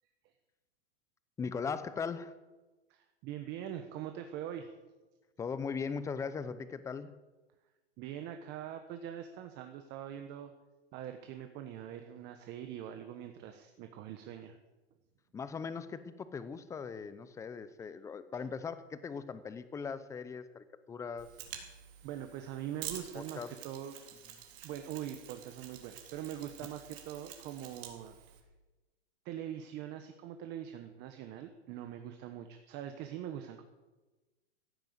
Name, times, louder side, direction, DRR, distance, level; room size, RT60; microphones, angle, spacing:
voice 1, 1.4-2.4 5.4-7.2 15.3-21.3 23.1-23.6, left 5 dB, 10° left, 14 dB, 0.6 m, -39 dB
voice 2, 2.9-4.7 8.0-10.5 10.9-14.6 22.0-24.0 24.6-28.1 29.2-33.6, right 10 dB, 30° right, 7 dB, 1.2 m, -43 dB
Mechanisms, 21.2-28.4, right 10 dB, 55° right, 3.6 m, -49 dB
15.5 x 9.0 x 8.0 m, 1.2 s
hypercardioid pair, 135°, 34 cm